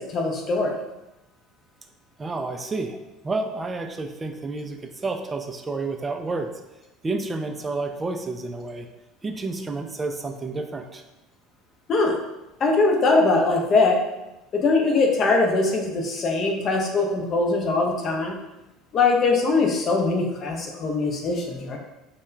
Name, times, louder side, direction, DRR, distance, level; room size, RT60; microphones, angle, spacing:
voice 1, 0.1-0.7 11.9-12.1 12.6-14.0 14.5-18.4 18.9-21.8, left 3 dB, 45° left, 1 dB, 0.5 m, -21 dB
voice 2, 2.2-3.0 3.2-6.5 7.0-8.9 9.2-11.0, right 3 dB, 25° right, 5 dB, 0.3 m, -30 dB
2.2 x 2.1 x 3.1 m, 0.99 s
hypercardioid pair, 70°, 0 cm